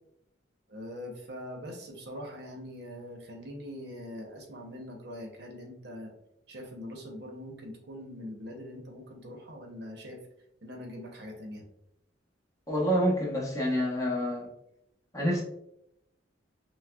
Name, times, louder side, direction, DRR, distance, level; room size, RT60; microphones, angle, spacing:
voice 1, 0.7-6.1 6.5-10.2 10.6-11.6, left 1 dB, 60° right, 2 dB, 0.8 m, -42 dB
voice 2, 12.7-14.5 15.1-15.4, equal, 15° left, -3 dB, 0.9 m, -27 dB
6.0 x 2.2 x 2.3 m, 0.81 s
head